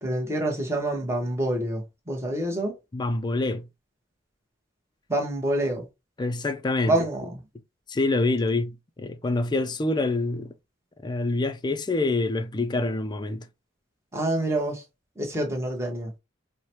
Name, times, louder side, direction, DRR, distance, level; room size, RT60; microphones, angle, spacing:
voice 1, 0.0-2.7 5.1-5.9 6.9-7.4 14.1-14.8 15.2-16.1, right 1 dB, 15° right, 0.9 m, -27 dB
voice 2, 2.9-3.7 6.2-7.0 7.9-10.5 11.0-13.5, left 2 dB, 25° left, 0.4 m, -26 dB
4.7 x 2.1 x 2.9 m
head